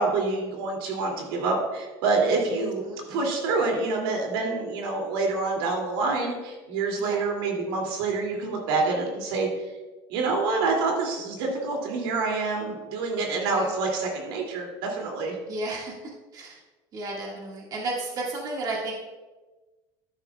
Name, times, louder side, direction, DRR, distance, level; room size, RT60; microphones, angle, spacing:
voice 1, 0.0-2.8 3.1-9.5 10.1-15.4, right 3 dB, 85° right, 0 dB, 2.5 m, -27 dB
voice 2, 2.8-3.2 7.0-7.2 13.4-13.8 15.5-15.9 16.3-16.6 16.9-18.9, right 2 dB, 35° right, -2 dB, 1.8 m, -33 dB
12.0 x 10.0 x 2.3 m, 1.2 s
cardioid pair, 150°, 12 cm